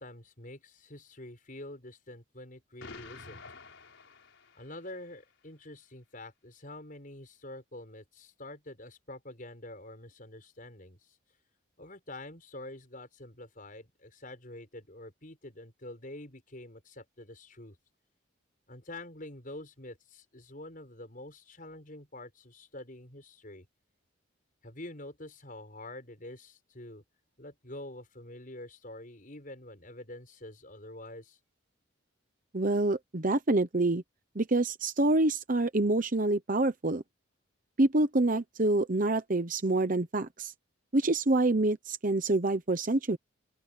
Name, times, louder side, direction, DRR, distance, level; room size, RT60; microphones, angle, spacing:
voice 1, 0.0-3.4 4.5-11.0 11.8-17.8 18.7-23.6 24.6-27.0 27.4-31.4, left 1 dB, 45° left, 6.4 m, -46 dB
Explosion, 2.8-5.0, left 4 dB, 75° left, 4.9 m, -49 dB
voice 2, 32.5-34.0 34.3-37.0 37.8-40.5 40.9-43.2, right 2 dB, 40° right, 0.9 m, -27 dB
open air
head